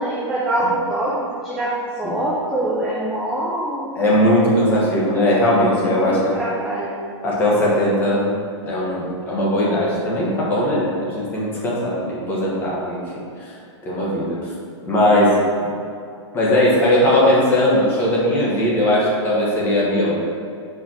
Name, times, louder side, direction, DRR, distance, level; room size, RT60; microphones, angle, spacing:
voice 1, 0.0-1.7 2.0-3.9 6.0-6.9, right 1 dB, 5° right, -7 dB, 0.4 m, -24 dB
voice 2, 3.9-6.3 7.2-8.3 8.6-13.0 13.4-13.5 13.8-14.4 14.8-15.3 15.6-15.7 16.3-20.1, left 1 dB, 15° left, -6 dB, 1.2 m, -19 dB
4.6 x 4.6 x 6.0 m, 2.5 s
supercardioid pair, 170°, 15 cm